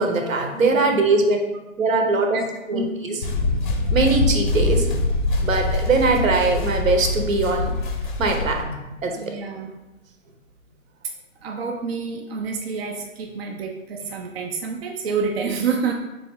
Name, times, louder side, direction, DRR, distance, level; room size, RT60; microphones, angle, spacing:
voice 1, 0.0-1.4 1.8-2.4 2.7-3.2 3.9-4.9 5.4-7.7 8.2-8.8 9.0-9.2, right 3 dB, 75° right, 3 dB, 0.9 m, -21 dB
voice 2, 2.3-2.9 9.2-9.7 11.4-15.9, right 5 dB, 50° right, 2 dB, 0.5 m, -28 dB
sound 1, 3.2-8.6, left 2 dB, 40° left, 0.5 m, -23 dB
3.5 x 3.4 x 3.5 m, 1.0 s
hypercardioid pair, 140°, 40 cm